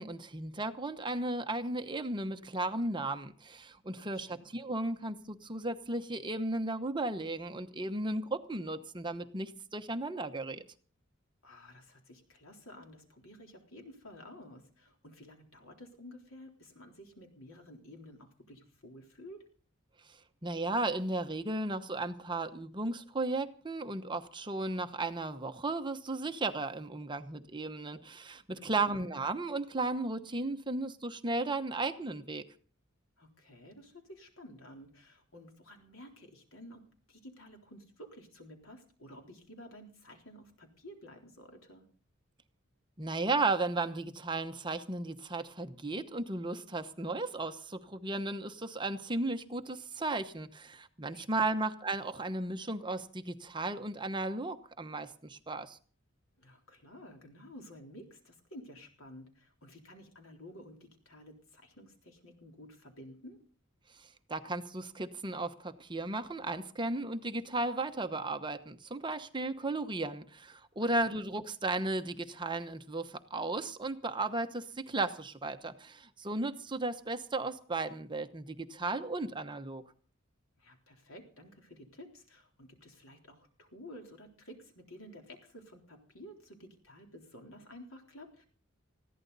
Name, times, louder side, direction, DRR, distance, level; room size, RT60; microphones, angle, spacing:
voice 1, 0.0-10.6 20.1-32.4 43.0-55.8 64.0-79.8, right 2 dB, 25° right, 8 dB, 1.0 m, -35 dB
voice 2, 4.0-4.5 11.4-19.4 28.5-28.9 33.2-41.9 51.1-51.6 56.4-63.4 70.8-71.2 80.6-88.5, left 1 dB, 85° left, 3 dB, 3.8 m, -52 dB
20.5 x 15.0 x 4.1 m, 0.42 s
head